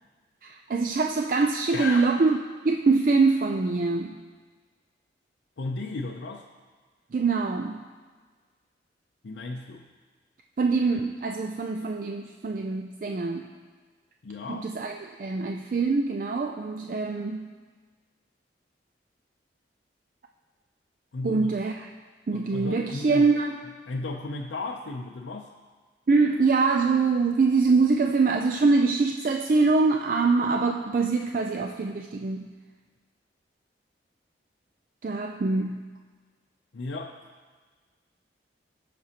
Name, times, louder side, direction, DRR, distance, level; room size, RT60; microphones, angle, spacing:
voice 1, 0.4-2.4 2.6-4.2 7.1-7.8 10.6-13.5 14.5-17.5 21.2-21.9 22.3-23.6 26.1-32.5 35.0-35.8, right 4 dB, 45° right, 3 dB, 0.4 m, -24 dB
voice 2, 1.7-2.1 5.6-6.5 9.2-9.9 14.2-14.7 21.1-21.6 22.3-23.3 23.9-25.5 36.7-37.3, left 3 dB, 80° left, 0 dB, 0.5 m, -34 dB
17.0 x 6.0 x 2.9 m, 1.5 s
head